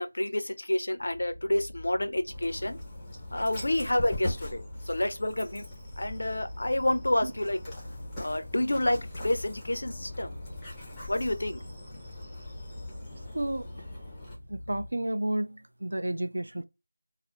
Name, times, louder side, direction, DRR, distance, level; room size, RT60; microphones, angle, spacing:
voice 1, 0.0-2.8 3.3-5.7 6.0-7.6 8.2-9.0 9.2-10.4 11.1-11.6, left 1 dB, 65° left, 0.4 m, -29 dB
sound 1, 1.0-14.9, left 1 dB, 60° right, 0.7 m, -45 dB
Dog, 2.3-14.3, left 2 dB, 5° left, 0.4 m, -42 dB
voice 2, 13.3-13.7 14.5-16.6, right 1 dB, 80° right, 0.3 m, -31 dB
2.3 x 2.0 x 2.8 m
figure-of-eight pair, 175°, 0 cm